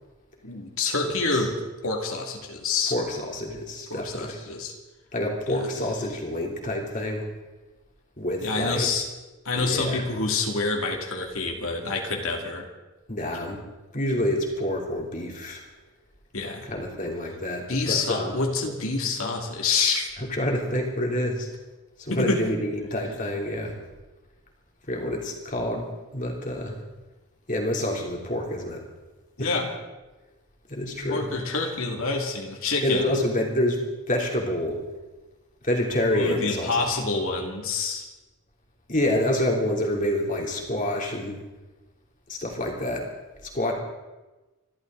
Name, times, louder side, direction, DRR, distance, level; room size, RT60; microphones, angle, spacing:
voice 1, 0.4-1.6 1.8-2.9 3.9-4.8 5.5-5.6 8.4-9.1 9.4-12.7 16.3-16.7 17.7-20.1 22.1-22.4 29.4-29.7 31.1-33.2 36.1-38.1, left 3 dB, 70° left, 1 dB, 2.4 m, -27 dB
voice 2, 2.9-4.4 5.1-7.3 8.2-8.9 9.6-10.0 13.1-13.6 13.9-15.6 16.7-18.4 20.3-21.5 22.0-23.8 24.9-25.9 26.1-26.8 27.5-28.8 29.4-29.5 30.7-31.3 32.8-33.8 34.1-34.8 35.6-36.8 38.9-41.4 42.3-43.1 43.5-43.7, left 1 dB, 35° left, 0 dB, 3.1 m, -27 dB
27.0 x 12.5 x 3.9 m, 1.1 s
head